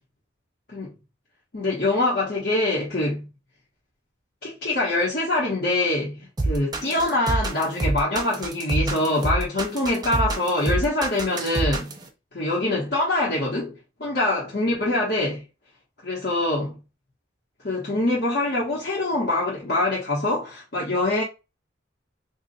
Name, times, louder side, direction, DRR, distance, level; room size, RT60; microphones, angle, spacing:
voice 1, 1.5-3.3 4.4-12.0 12.3-15.4 16.0-16.8 17.6-21.2, left 2 dB, 60° left, 1.1 m, -24 dB
sound 1, 6.4-12.0, right 2 dB, 20° right, 0.5 m, -26 dB
2.7 x 2.4 x 4.0 m
head